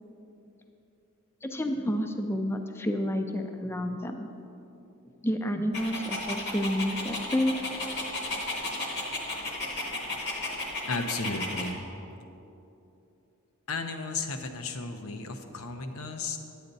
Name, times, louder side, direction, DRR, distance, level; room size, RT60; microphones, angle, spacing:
voice 1, 1.4-4.3 5.2-7.5, equal, 10° left, 6 dB, 0.4 m, -29 dB
Dog, 5.7-11.7, left 2 dB, 50° left, 1.2 m, -34 dB
voice 2, 10.9-11.8 13.7-16.4, left 3 dB, 80° left, 7 dB, 0.7 m, -34 dB
9.8 x 8.4 x 4.0 m, 2.9 s
head